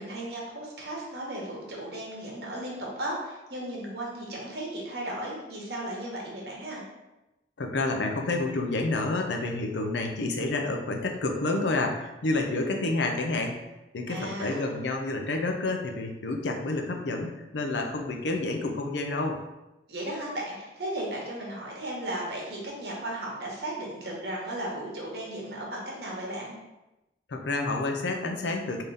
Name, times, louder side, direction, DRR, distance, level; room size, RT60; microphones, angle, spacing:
voice 1, 0.0-6.8 14.1-14.7 19.9-26.5, right 1 dB, 65° right, -3 dB, 1.1 m, -35 dB
voice 2, 7.6-13.6 13.9-19.4 27.3-28.8, left 2 dB, 85° left, 3 dB, 0.5 m, -29 dB
3.7 x 2.7 x 3.4 m, 0.98 s
head